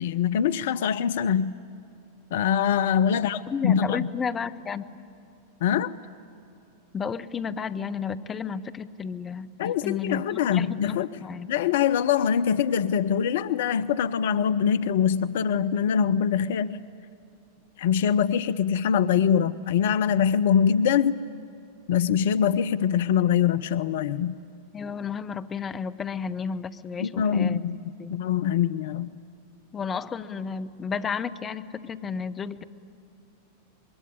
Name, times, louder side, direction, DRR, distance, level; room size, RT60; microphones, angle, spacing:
voice 1, 0.0-1.6 2.3-3.4 3.6-4.1 5.6-5.9 9.6-11.1 11.5-16.8 17.8-21.1 21.9-24.3 27.0-27.8 28.1-29.1, left 8 dB, 55° left, 14 dB, 0.5 m, -23 dB
voice 2, 3.5-4.9 6.9-9.5 9.8-11.5 24.7-27.6 28.0-28.2 29.7-32.6, left 6 dB, 20° left, 9 dB, 0.8 m, -32 dB
26.0 x 22.0 x 9.8 m, 2.7 s
figure-of-eight pair, 90°, 0 cm